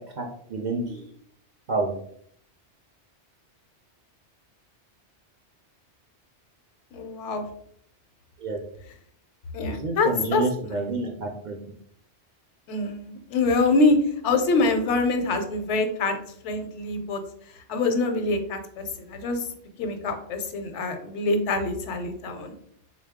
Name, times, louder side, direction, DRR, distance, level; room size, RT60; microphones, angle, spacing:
voice 1, 0.2-1.1 1.7-1.9 8.4-8.6 9.7-11.5, right 3 dB, 55° right, 1 dB, 0.5 m, -29 dB
voice 2, 6.9-7.4 9.5-10.7 12.7-14.0 14.2-16.2 16.4-17.2 17.7-19.5 19.8-22.5, left 3 dB, 90° left, 6 dB, 0.9 m, -25 dB
3.7 x 2.3 x 3.4 m, 0.66 s
omnidirectional pair, 1.2 m